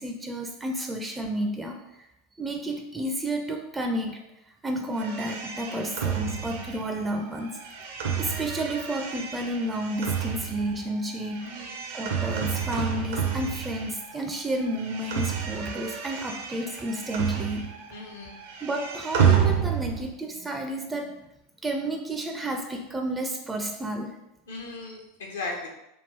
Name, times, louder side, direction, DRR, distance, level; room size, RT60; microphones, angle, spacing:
voice 1, 0.0-2.1 2.4-4.2 4.5-7.5 8.2-11.5 11.9-17.7 18.6-21.1 21.6-24.2, right 1 dB, 15° right, 4 dB, 0.4 m, -31 dB
sound 1, 5.0-14.2 14.5-18.0 18.2-20.1, right 8 dB, 65° right, 0.5 m, -30 dB
voice 2, 11.4-11.8 17.9-18.4 24.5-25.7, left 3 dB, 75° left, 0 dB, 0.7 m, -37 dB
3.5 x 2.3 x 3.3 m, 0.87 s
hypercardioid pair, 85°, 0 cm